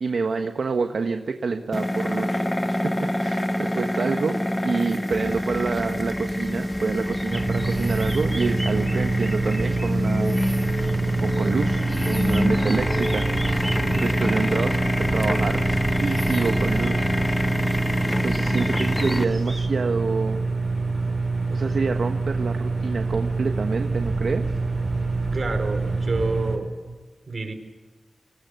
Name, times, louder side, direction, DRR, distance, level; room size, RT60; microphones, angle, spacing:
voice 1, 0.0-4.4 4.6-10.4 11.2-11.8 12.0-13.7 13.9-15.6 16.0-17.1 18.0-20.4 21.5-24.4, right 4 dB, 70° right, 5 dB, 1.4 m, -27 dB
sound 1, 1.7-19.2, left 1 dB, 15° left, 1.0 m, -26 dB
sound 2, 5.1-19.7, equal, 5° right, 2.9 m, -36 dB
sound 3, 7.3-26.6, right 3 dB, 35° right, 6.1 m, -26 dB
voice 2, 25.3-26.9 27.3-27.5, right 3 dB, 50° right, 7 dB, 4.5 m, -29 dB
26.0 x 20.0 x 8.3 m, 1.3 s
wide cardioid pair, 95°, 0 cm